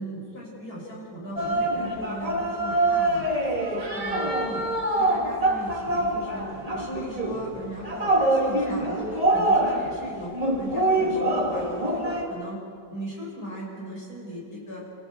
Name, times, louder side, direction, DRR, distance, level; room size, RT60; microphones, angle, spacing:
voice 1, 0.0-3.2 3.6-4.6 4.9-12.6 12.9-14.8, right 1 dB, 60° left, -3 dB, 6.6 m, -38 dB
sound 1, 1.4-12.2, right 1 dB, 20° right, 2.8 m, -25 dB
28.0 x 15.5 x 8.3 m, 2.3 s
omnidirectional pair, 1.8 m